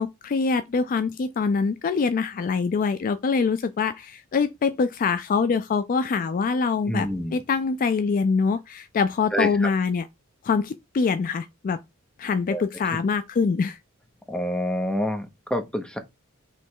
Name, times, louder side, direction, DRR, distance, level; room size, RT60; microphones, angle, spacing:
voice 1, 0.0-10.1 10.4-11.8 12.2-13.8, left 5 dB, 40° left, 0.3 m, -24 dB
voice 2, 6.9-7.4 9.3-9.7 12.5-12.6 14.3-16.0, equal, 5° left, 0.7 m, -27 dB
3.2 x 3.1 x 4.5 m
head